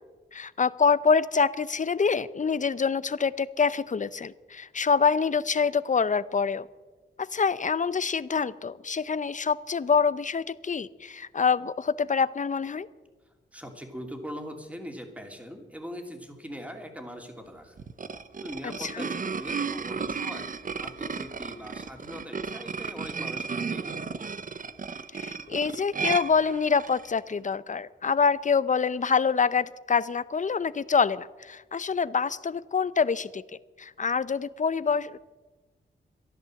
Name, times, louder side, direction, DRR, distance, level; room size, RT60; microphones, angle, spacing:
voice 1, 0.3-6.7 7.2-12.9 18.8-19.1 25.1-33.4 33.8-35.2, left 5 dB, 40° left, 17 dB, 0.6 m, -26 dB
voice 2, 13.5-17.7 18.4-20.5 20.8-24.2, equal, 5° right, 4 dB, 2.8 m, -41 dB
sound 1, 17.8-27.1, right 5 dB, 40° right, 0.8 m, -34 dB
13.5 x 11.0 x 7.6 m, 1.2 s
cardioid pair, 65°, 20 cm